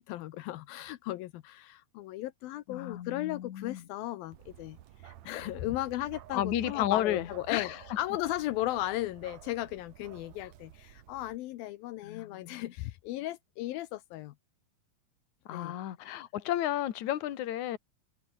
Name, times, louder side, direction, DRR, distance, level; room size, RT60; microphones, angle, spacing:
voice 1, 0.0-4.8 5.0-7.7 8.0-14.3 15.5-15.8, left 15 dB, 80° left, 2.7 m, -36 dB
voice 2, 2.7-3.9 6.3-7.8 10.4-10.5 12.0-12.7 15.5-17.8, left 12 dB, 60° left, 2.7 m, -33 dB
Bark, 4.3-11.4, right 13 dB, 65° right, 2.0 m, -51 dB
omnidirectional pair, 4.2 m